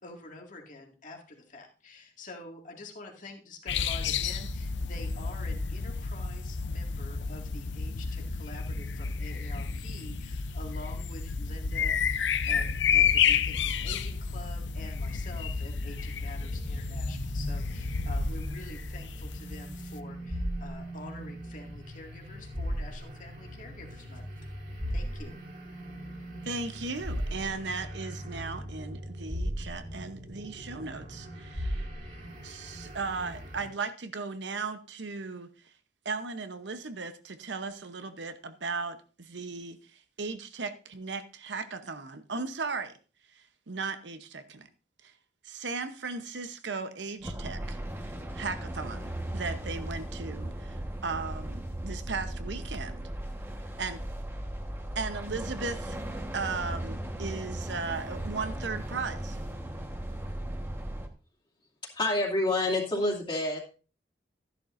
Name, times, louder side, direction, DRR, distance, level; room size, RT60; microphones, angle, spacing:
voice 1, 0.0-11.9 12.5-24.2 24.9-25.4, left 2 dB, 45° left, 2.1 m, -47 dB
sound 1, 3.7-20.0, left 6 dB, 85° left, 0.6 m, -31 dB
sound 2, 16.4-33.7, equal, 50° right, 3.0 m, -38 dB
voice 2, 26.4-31.9 32.4-35.5 36.0-43.0 43.3-44.7 45.0-45.1 45.4-53.1 53.8-54.0 54.9-56.0 56.3-59.4, right 4 dB, 75° right, 0.9 m, -37 dB
sound 3, 47.2-61.1, right 1 dB, 15° right, 1.3 m, -37 dB
voice 3, 61.9-63.6, left 2 dB, 30° left, 2.6 m, -27 dB
13.0 x 11.0 x 2.6 m
head